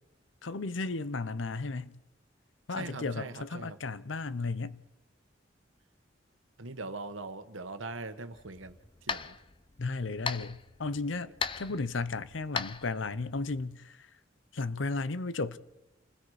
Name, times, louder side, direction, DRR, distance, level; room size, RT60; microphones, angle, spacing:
voice 1, 0.4-2.0 2.7-4.8 9.8-11.3 11.6-14.1 14.5-15.6, left 3 dB, 75° left, 0.8 m, -34 dB
voice 2, 2.7-3.8 6.6-9.4, right 3 dB, 85° right, 1.4 m, -41 dB
sound 1, 8.3-13.6, left 5 dB, 25° left, 0.6 m, -39 dB
28.5 x 20.0 x 4.9 m
head